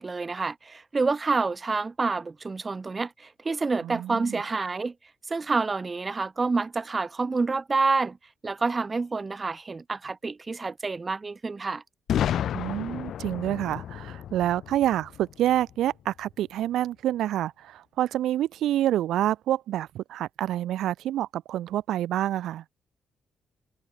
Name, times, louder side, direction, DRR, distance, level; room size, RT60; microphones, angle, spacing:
voice 1, 0.0-4.9 5.3-8.2 8.4-11.8, right 4 dB, 20° right, 0.9 m, -28 dB
voice 2, 3.8-4.4 12.5-22.6, right 12 dB, 85° right, 1.8 m, -27 dB
Boom, 12.1-15.9, left 10 dB, 65° left, 0.6 m, -31 dB
cardioid pair, 155°, 0 cm